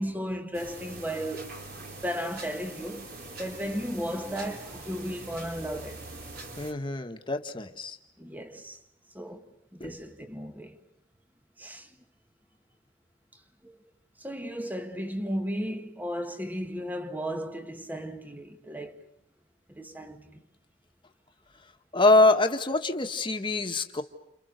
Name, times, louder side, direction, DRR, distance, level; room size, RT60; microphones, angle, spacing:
voice 1, 0.0-1.6 2.0-6.1 8.2-8.8 9.1-10.8 11.6-11.9 13.6-13.8 14.2-19.0 19.7-20.4, equal, 10° right, 1.6 m, -35 dB
sound 1, 0.5-6.7, right 2 dB, 50° right, 3.9 m, -43 dB
voice 2, 6.6-8.0 9.8-9.9 21.9-24.0, left 2 dB, 25° left, 1.8 m, -24 dB
30.0 x 29.5 x 6.7 m
head